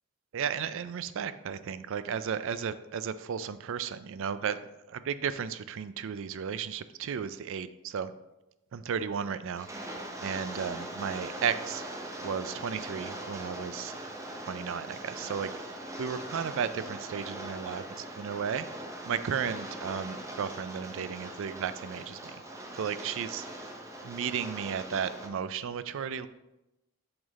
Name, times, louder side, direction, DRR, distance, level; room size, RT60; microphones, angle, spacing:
voice 1, 0.3-4.6 4.9-8.1 8.7-9.7 10.2-11.8 12.2-13.9 14.4-15.5 16.0-18.7 19.1-22.4 22.7-23.5 24.0-26.3, right 7 dB, 60° right, 13 dB, 0.4 m, -34 dB
Rain, 9.5-25.3, right 1 dB, 15° right, 0.7 m, -41 dB
7.7 x 4.0 x 4.1 m, 0.94 s
head